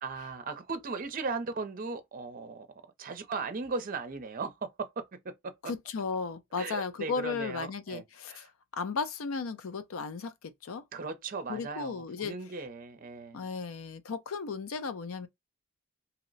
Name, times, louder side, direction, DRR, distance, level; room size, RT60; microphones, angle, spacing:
voice 1, 0.0-2.7 3.0-5.5 6.6-8.5 10.9-13.5, right 4 dB, 40° right, 0.5 m, -37 dB
voice 2, 5.6-10.8 11.5-12.4 13.3-15.3, left 5 dB, 85° left, 0.5 m, -35 dB
2.8 x 2.0 x 3.9 m
head